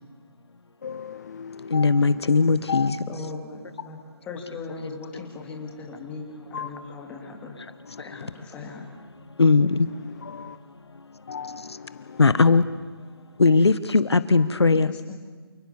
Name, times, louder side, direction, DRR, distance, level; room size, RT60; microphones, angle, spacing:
voice 1, 0.8-2.9 6.5-6.7 7.9-8.3 9.6-10.6 11.3-12.3 14.3-14.7, left 6 dB, 40° left, 0.9 m, -37 dB
voice 2, 1.7-3.0 4.8-5.0 9.4-9.9 12.2-12.7 13.4-14.9, left 4 dB, 90° left, 1.3 m, -19 dB
voice 3, 3.1-4.0 4.2-7.6 8.0-8.9 14.7-15.1, left 3 dB, 10° left, 2.8 m, -38 dB
28.0 x 19.5 x 7.2 m
hypercardioid pair, 165°, 13 cm